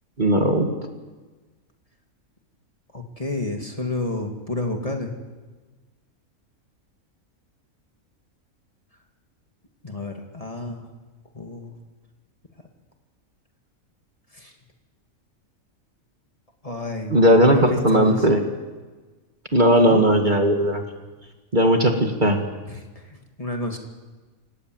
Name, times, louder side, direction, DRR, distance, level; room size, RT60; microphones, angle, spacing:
voice 1, 0.2-0.7 17.1-18.4 19.5-20.8 21.5-22.4, equal, 35° right, 4 dB, 2.1 m, -17 dB
voice 2, 2.9-5.1 9.8-10.8 11.3-11.7 14.3-14.5 16.6-18.3 19.8-20.1 22.7-23.8, left 2 dB, 25° left, 2 dB, 2.4 m, -30 dB
27.0 x 18.5 x 7.9 m, 1.3 s
omnidirectional pair, 1.5 m